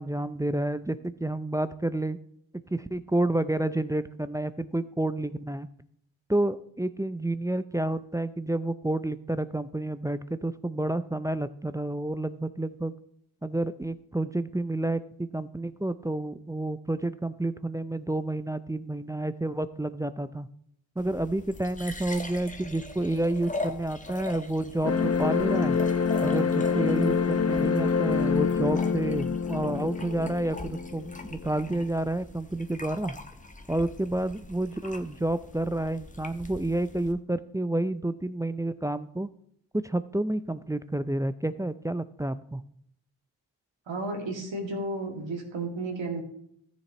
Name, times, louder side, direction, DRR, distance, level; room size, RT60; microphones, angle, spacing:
voice 1, 0.0-2.2 2.7-5.7 6.3-12.9 13.4-20.5 21.0-25.8 26.2-33.1 33.7-39.3 39.8-42.6, right 1 dB, 10° right, 12 dB, 0.4 m, -30 dB
sound 1, 21.0-37.1, left 2 dB, 15° left, 1.1 m, -42 dB
sound 2, 24.8-31.8, left 5 dB, 35° left, 0.7 m, -26 dB
voice 2, 43.9-46.2, right 2 dB, 75° right, 1 dB, 2.2 m, -33 dB
13.5 x 7.2 x 3.0 m, 0.71 s
supercardioid pair, 40°, 46 cm